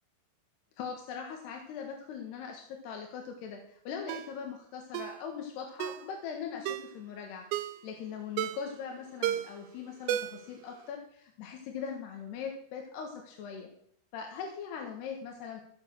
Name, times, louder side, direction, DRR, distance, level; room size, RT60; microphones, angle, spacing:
voice 1, 0.8-13.7 14.1-15.6, left 6 dB, 65° left, 3 dB, 3.2 m, -41 dB
Ringtone, 4.1-4.3 4.9-5.2 5.8-6.1 6.7-6.9 7.5-7.8 8.4-8.7 9.2-9.6 10.1-10.5 10.8-10.9, right 11 dB, 85° right, 3.3 m, -33 dB
15.5 x 7.4 x 6.2 m, 0.66 s
omnidirectional pair, 5.8 m